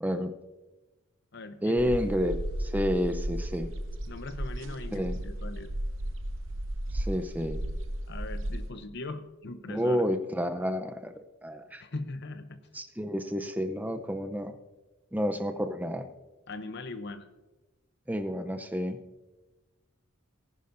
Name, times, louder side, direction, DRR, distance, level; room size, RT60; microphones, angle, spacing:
voice 1, 0.0-0.3 1.6-3.7 4.9-5.2 6.9-7.6 9.7-11.1 11.4-11.8 12.7-14.5 15.1-16.0 18.1-19.0, equal, 10° right, 7 dB, 0.6 m, -30 dB
voice 2, 1.3-1.9 4.1-5.7 8.1-10.0 11.8-12.6 16.5-17.3, left 2 dB, 60° left, 9 dB, 0.7 m, -40 dB
sound 1, 1.8-8.7, right 1 dB, 70° right, 0.9 m, -34 dB
19.0 x 10.5 x 2.6 m, 1.1 s
head